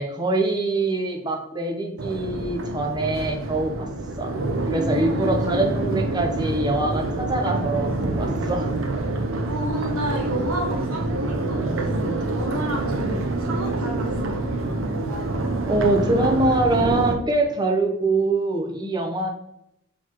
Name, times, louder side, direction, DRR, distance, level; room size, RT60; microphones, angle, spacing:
voice 1, 0.0-3.9 4.2-4.4 4.7-8.7 15.7-19.3, right 2 dB, 20° right, 2 dB, 0.6 m, -24 dB
Crowd, 2.0-17.1, right 2 dB, 65° right, 0.6 m, -26 dB
voice 2, 4.5-5.7 9.5-13.1 13.4-14.4, left 1 dB, 85° right, 1 dB, 1.3 m, -32 dB
4.5 x 3.9 x 2.9 m, 0.79 s
head